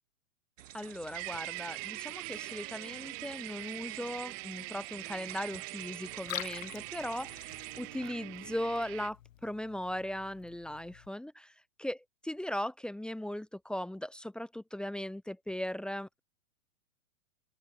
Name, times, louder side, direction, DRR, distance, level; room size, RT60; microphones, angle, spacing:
sound 1, 0.6-8.5, right 13 dB, 60° right, 6.3 m, -51 dB
voice 1, 0.7-12.0 12.3-16.2, left 1 dB, ahead, 1.5 m, -38 dB
sound 2, 1.1-9.1, right 33 dB, 35° right, 1.6 m, -43 dB
Liquid, 6.1-11.1, left 12 dB, 65° left, 5.3 m, -47 dB
open air
hypercardioid pair, 140°, 42 cm